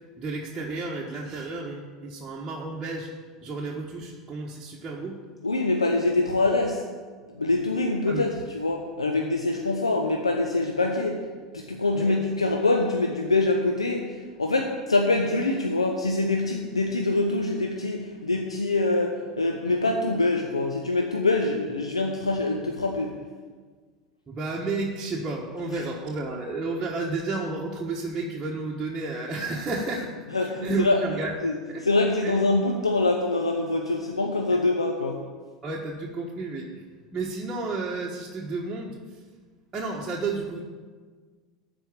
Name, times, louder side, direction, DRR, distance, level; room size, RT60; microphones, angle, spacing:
voice 1, 0.2-3.1 3.4-5.2 8.1-8.3 11.9-12.2 24.3-31.3 31.7-31.8 32.2-32.3 35.6-36.8 37.1-39.2 39.7-40.6, right 3 dB, 20° right, -4 dB, 1.5 m, -32 dB
voice 2, 5.4-6.8 7.3-11.3 11.5-23.1 30.3-31.0 31.4-35.2, left 2 dB, 90° left, 2 dB, 0.9 m, -25 dB
13.5 x 5.0 x 8.7 m, 1.5 s
figure-of-eight pair, 80°, 3 cm